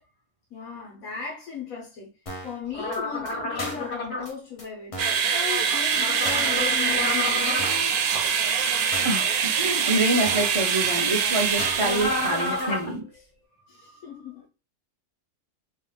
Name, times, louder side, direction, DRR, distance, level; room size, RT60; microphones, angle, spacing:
voice 1, 0.5-2.1 2.4-5.0 5.3-8.0 13.7-14.5, left 6 dB, 60° left, 1.7 m, -36 dB
sound 1, 2.3-2.6 2.9-3.0 3.3-3.4 3.6-3.9 4.3-4.4 4.6-4.7 4.9-5.2 5.6-5.7 5.9-6.0 6.2-6.6 6.9-7.0 7.2-7.3 7.6-7.9 8.3-8.4 8.6-8.7 8.9-9.2 9.6-9.7 9.9-10.0 10.3-10.6 10.9-11.0 11.2-11.3 11.6-11.9 12.2-12.3 12.6-12.7, equal, 30° left, 0.6 m, -37 dB
sound 2, 2.7-4.2 5.9-7.7 11.8-12.9, left 2 dB, 85° left, 2.3 m, -30 dB
sound 3, 5.0-12.8, right 6 dB, 75° right, 1.0 m, -24 dB
voice 2, 9.0-13.1, right 1 dB, 50° right, 0.3 m, -26 dB
4.2 x 2.8 x 3.3 m
omnidirectional pair, 1.7 m